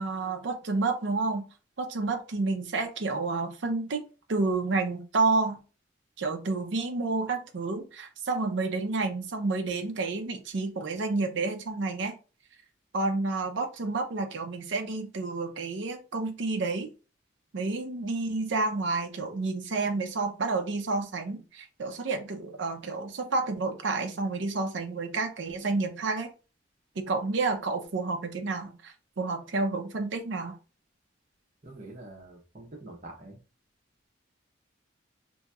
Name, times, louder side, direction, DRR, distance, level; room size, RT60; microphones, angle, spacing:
voice 1, 0.0-1.5 1.8-4.0 4.3-5.6 6.2-12.1 12.9-16.9 17.5-26.3 27.0-30.6, right 3 dB, 65° right, 4 dB, 0.5 m, -30 dB
voice 2, 31.6-33.4, right 2 dB, 40° right, -1 dB, 0.9 m, -45 dB
2.9 x 2.7 x 2.4 m, 0.33 s
head